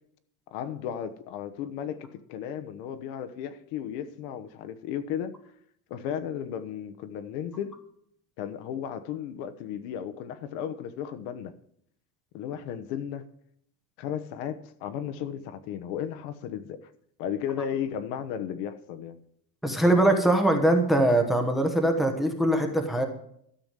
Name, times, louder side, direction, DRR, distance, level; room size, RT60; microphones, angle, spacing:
voice 1, 0.5-5.3 5.9-7.8 8.4-11.5 12.3-13.2 14.0-16.9 17.2-19.2, left 9 dB, 55° left, 1.1 m, -34 dB
voice 2, 19.6-23.1, right 1 dB, ahead, 0.9 m, -22 dB
13.0 x 7.0 x 7.4 m
cardioid pair, 180°, 41 cm